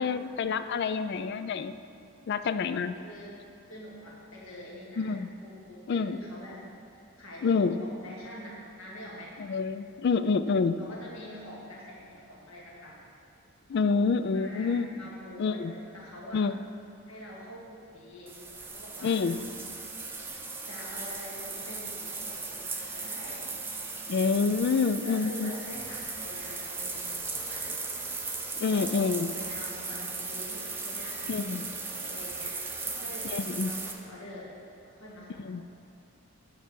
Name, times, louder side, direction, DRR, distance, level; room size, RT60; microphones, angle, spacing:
voice 1, 0.0-1.8 2.3-3.0 5.0-5.3 5.9-6.2 7.4-7.8 9.4-10.8 13.7-14.9 15.4-15.7 16.3-16.6 19.0-19.5 24.1-25.5 28.6-29.3 31.3-31.7 33.2-33.7 35.4-35.7, left 5 dB, 50° left, 11 dB, 0.3 m, -27 dB
voice 2, 3.0-6.6 6.9-9.4 10.8-13.0 14.3-16.5 17.1-19.2 20.7-23.4 25.0-27.9 28.7-33.3 33.6-34.5 34.8-35.7, left 1 dB, 70° left, -5 dB, 2.0 m, -46 dB
sound 1, 18.3-33.9, right 3 dB, 10° right, 0.7 m, -37 dB
9.0 x 4.6 x 6.8 m, 2.7 s
head